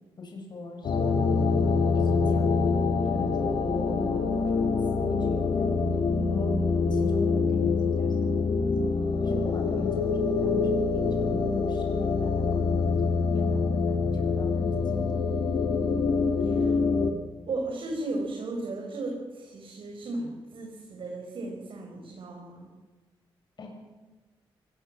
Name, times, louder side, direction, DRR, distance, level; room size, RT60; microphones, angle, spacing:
voice 1, 0.2-1.5 1.9-2.6 3.1-5.8 6.3-8.9 9.2-15.2 23.6-23.8, left 3 dB, 50° left, 2 dB, 7.5 m, -39 dB
sound 1, 0.8-17.1, left 4 dB, 65° left, 2.3 m, -25 dB
voice 2, 17.5-22.7, right 2 dB, 60° right, 1 dB, 5.1 m, -35 dB
23.0 x 21.0 x 7.7 m, 1.3 s
cardioid pair, 75°, 10 cm